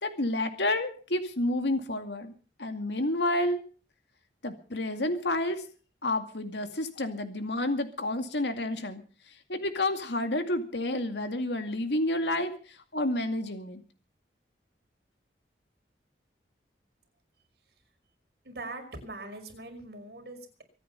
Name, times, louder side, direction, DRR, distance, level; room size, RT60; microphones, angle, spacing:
voice 1, 0.0-2.3 2.6-3.6 4.4-5.6 6.0-9.0 9.5-12.5 12.9-13.8, left 1 dB, 80° left, 7 dB, 2.2 m, -29 dB
voice 2, 18.5-20.6, right 2 dB, 65° right, 4 dB, 5.3 m, -42 dB
24.5 x 9.3 x 5.6 m, 0.40 s
head